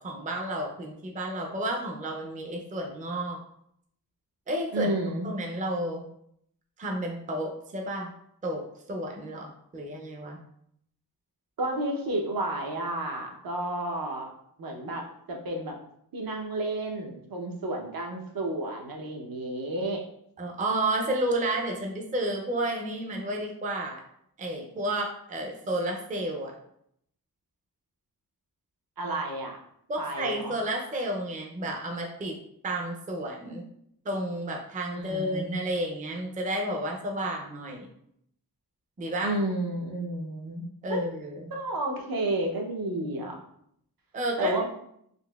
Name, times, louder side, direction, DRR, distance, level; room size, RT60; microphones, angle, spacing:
voice 1, 0.0-3.4 4.5-4.9 5.2-6.1 6.8-8.1 8.4-10.4 20.4-24.0 24.4-26.5 29.9-32.4 32.6-33.6 34.1-37.9 39.0-39.4 40.8-41.5 44.1-44.7, right 1 dB, 20° right, 1 dB, 0.4 m, -31 dB
voice 2, 4.7-5.3 11.6-14.3 14.6-15.8 16.1-20.1 29.0-29.6 30.0-30.5 34.9-35.5 39.2-41.0 41.5-43.4 44.4-44.7, right 1 dB, 70° right, 1 dB, 0.7 m, -31 dB
3.9 x 2.7 x 2.2 m, 0.72 s
wide cardioid pair, 140°, 37 cm